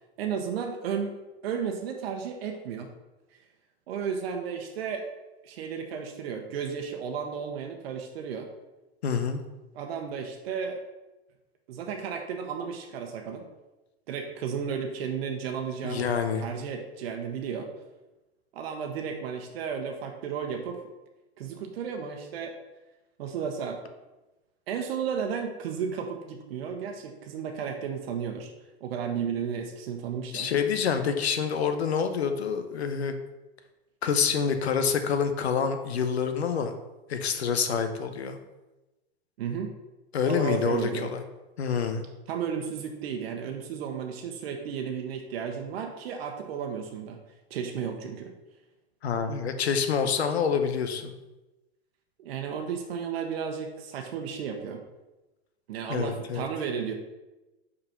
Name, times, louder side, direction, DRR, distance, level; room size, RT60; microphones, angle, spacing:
voice 1, 0.2-1.1 1.4-2.9 3.9-5.0 5.4-8.5 9.7-10.8 11.7-13.4 14.1-16.1 16.3-17.7 18.5-20.8 21.4-22.5 23.2-23.8 24.7-28.5 28.8-30.5 39.4-39.7 40.3-41.1 42.3-47.2 47.5-48.3 52.2-54.8 55.7-56.9, right 7 dB, 65° right, 3 dB, 1.0 m, -33 dB
voice 2, 9.0-9.4 15.8-16.4 30.3-33.1 34.0-36.7 37.1-38.4 40.1-41.2 41.6-42.1 49.0-51.1 55.9-56.5, left 6 dB, 80° left, 8 dB, 0.9 m, -27 dB
5.4 x 4.2 x 5.7 m, 1.1 s
hypercardioid pair, 100°, 32 cm